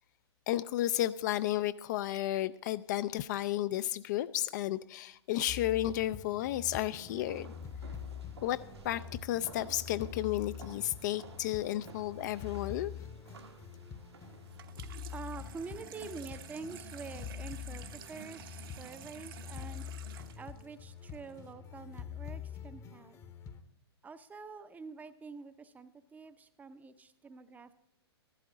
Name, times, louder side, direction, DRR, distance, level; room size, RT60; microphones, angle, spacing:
voice 1, 0.5-7.5 8.4-8.6 8.8-12.9, left 14 dB, 45° left, 14 dB, 0.4 m, -33 dB
sound 1, 5.5-23.6, left 8 dB, 20° left, 0.8 m, -46 dB
sound 2, 6.8-14.6, right 5 dB, 75° right, 1.4 m, -53 dB
Water tap faucet / Sink (filling or washing), 14.5-21.5, right 9 dB, 55° right, 0.9 m, -51 dB
voice 2, 15.1-19.9 20.4-23.2 24.0-27.7, right 4 dB, 10° right, 12 dB, 0.6 m, -47 dB
14.5 x 11.5 x 3.8 m, 0.80 s
figure-of-eight pair, 110°, 14 cm